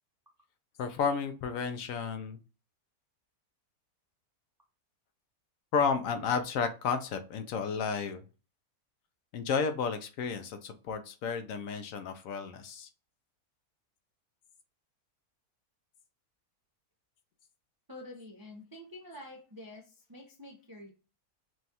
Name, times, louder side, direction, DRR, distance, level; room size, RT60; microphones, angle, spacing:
voice 1, 0.8-2.4 5.7-8.2 9.3-12.9, left 6 dB, 70° left, 8 dB, 0.9 m, -32 dB
voice 2, 17.9-20.9, left 1 dB, 30° right, 1 dB, 0.4 m, -48 dB
6.0 x 2.3 x 2.8 m, 0.33 s
omnidirectional pair, 1.6 m